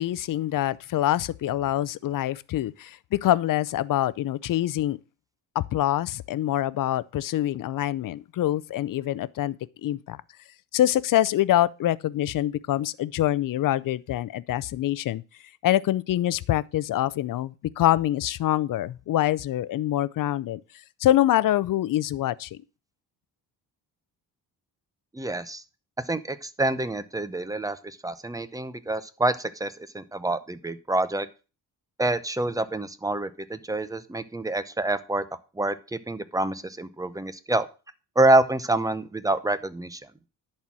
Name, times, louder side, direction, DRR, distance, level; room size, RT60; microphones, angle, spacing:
voice 1, 0.0-5.0 5.6-9.6 9.8-10.2 10.7-15.2 15.6-20.6 21.0-22.6, left 13 dB, 55° left, 0.6 m, -25 dB
voice 2, 25.1-25.6 26.1-31.3 32.0-35.2 35.6-37.7 38.2-40.0, right 2 dB, 10° right, 0.7 m, -26 dB
11.0 x 4.4 x 6.1 m
cardioid pair, 115°, 38 cm